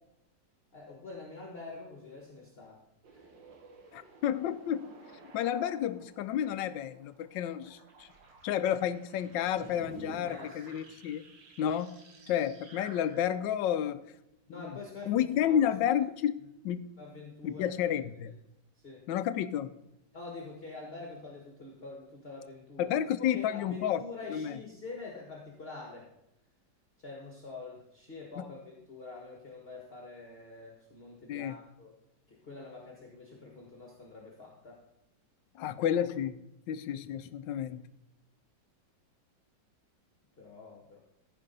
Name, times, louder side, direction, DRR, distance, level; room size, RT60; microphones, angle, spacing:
voice 1, 0.7-2.8 3.1-3.2 10.3-10.9 14.5-15.6 15.8-16.0 17.0-18.3 18.8-19.0 20.1-26.1 27.0-31.9 32.3-34.8 40.4-41.0, left 3 dB, 35° left, 0 dB, 1.6 m, -46 dB
sound 1, 3.0-13.2, right 3 dB, 85° right, 2.0 m, -53 dB
voice 2, 3.9-4.9 5.3-8.1 8.4-11.2 11.6-12.0 12.3-14.0 14.6-14.7 15.1-16.4 16.6-16.8 17.4-18.3 19.1-19.7 22.8-24.0 24.3-24.6 28.4-28.5 31.3-31.6 35.6-36.4 36.7-37.9, left 10 dB, 90° left, 13 dB, 1.3 m, -31 dB
14.5 x 5.0 x 5.4 m, 0.84 s
omnidirectional pair, 1.9 m